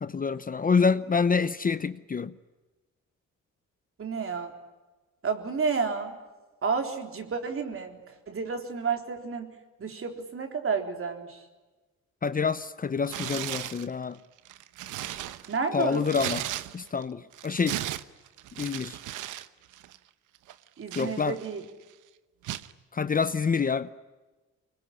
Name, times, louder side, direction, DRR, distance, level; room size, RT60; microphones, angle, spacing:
voice 1, 0.0-2.3 12.2-14.2 15.7-16.4 16.7-17.8 18.6-19.0 21.0-21.4 22.9-23.9, left 5 dB, 30° left, 0.8 m, -27 dB
voice 2, 4.0-4.6 5.2-6.2 6.6-9.5 9.8-11.4 15.5-16.2 20.8-21.6, right 5 dB, 45° right, 3.8 m, -31 dB
Tearing, 13.0-13.9 14.4-17.0 17.3-19.5 19.7-20.0 20.5-21.6 22.4-22.7, right 13 dB, 85° right, 1.0 m, -36 dB
24.5 x 21.5 x 9.9 m
cardioid pair, 90°, 30 cm